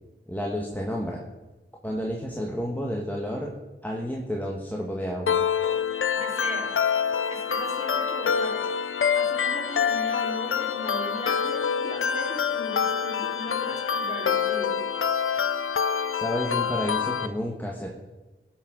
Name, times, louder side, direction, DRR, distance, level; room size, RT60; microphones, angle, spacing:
voice 1, 0.3-1.2 1.8-3.5 3.8-5.4 16.1-17.9, equal, 10° left, -2 dB, 1.5 m, -30 dB
sound 1, 5.3-17.3, left 7 dB, 75° left, 0.5 m, -26 dB
voice 2, 6.1-6.7 7.3-8.8 9.1-14.8, left 2 dB, 30° left, -2 dB, 3.7 m, -37 dB
16.0 x 6.3 x 5.2 m, 1.1 s
wide cardioid pair, 45°, 21 cm